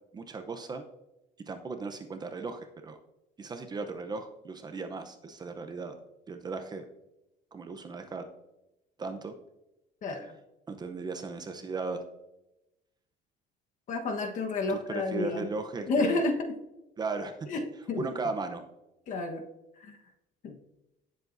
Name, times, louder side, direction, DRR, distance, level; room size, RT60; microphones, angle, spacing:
voice 1, 0.1-0.8 1.5-3.0 3.4-6.0 6.3-6.8 7.5-8.3 9.0-9.3 10.7-12.0 14.7-16.2 17.0-17.5 18.0-18.6, right 3 dB, 25° right, 7 dB, 0.7 m, -36 dB
voice 2, 10.0-10.3 13.9-15.5 15.9-16.5 17.5-18.0 19.1-19.4 19.8-20.0 20.4-20.6, left 3 dB, 45° left, 4 dB, 1.3 m, -30 dB
18.0 x 7.4 x 2.6 m, 0.93 s
cardioid pair, 160°, 18 cm